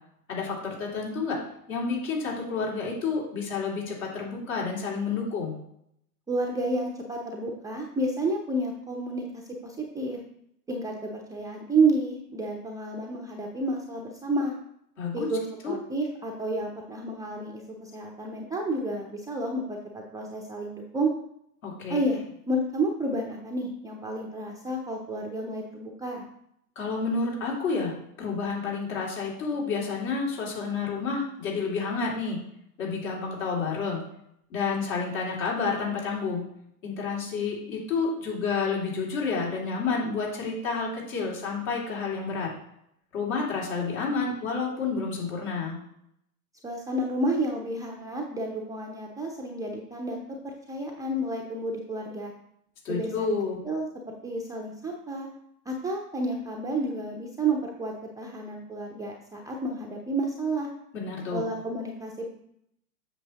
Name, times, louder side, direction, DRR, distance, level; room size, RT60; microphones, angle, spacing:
voice 1, 0.3-1.4 1.7-5.5 15.0-15.3 15.6-15.8 21.6-22.0 26.8-32.4 32.8-34.0 34.5-36.5 36.8-42.5 43.1-45.8 52.8-53.6 60.9-61.4, left 4 dB, 55° left, -3 dB, 2.8 m, -30 dB
voice 2, 6.3-10.2 10.7-14.5 15.1-21.1 21.9-22.2 22.5-26.2 46.6-50.2 50.4-52.3 52.9-53.3 53.6-53.9 54.2-55.3 55.7-60.7 61.3-62.3, right 2 dB, 5° right, -1 dB, 0.6 m, -30 dB
7.9 x 6.2 x 3.0 m, 0.73 s
figure-of-eight pair, 95°, 47 cm